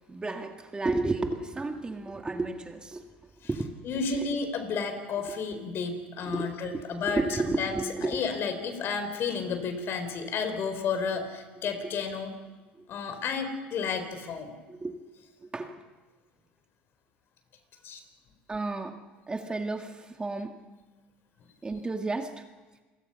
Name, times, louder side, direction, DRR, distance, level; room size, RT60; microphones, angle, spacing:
voice 1, 0.1-3.1 3.5-3.8 4.1-4.3 5.3-5.4 6.2-8.2 11.8-11.9 12.8-12.9 14.7-14.9 15.4-15.8 18.5-19.0 19.3-20.6 21.6-22.4, right 3 dB, 15° right, 5 dB, 2.0 m, -32 dB
voice 2, 3.9-7.2 7.6-12.3 12.9-14.5 17.8-18.0, left 5 dB, 50° left, 8 dB, 4.4 m, -32 dB
28.5 x 21.5 x 5.7 m, 1.3 s
supercardioid pair, 95°, 5 cm